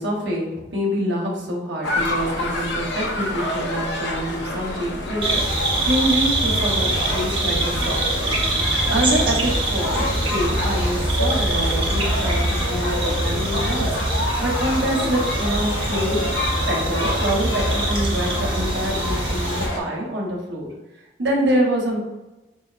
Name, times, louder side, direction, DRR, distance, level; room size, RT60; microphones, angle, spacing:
voice 1, 0.0-5.6 5.8-8.4 8.9-16.2 16.7-20.7 21.2-22.0, equal, 65° right, -2 dB, 1.0 m, -26 dB
sound 1, 1.8-19.8, left 1 dB, 70° left, 0.7 m, -28 dB
sound 2, 5.2-19.7, right 1 dB, 30° right, 0.7 m, -24 dB
5.4 x 2.6 x 2.5 m, 1.0 s
head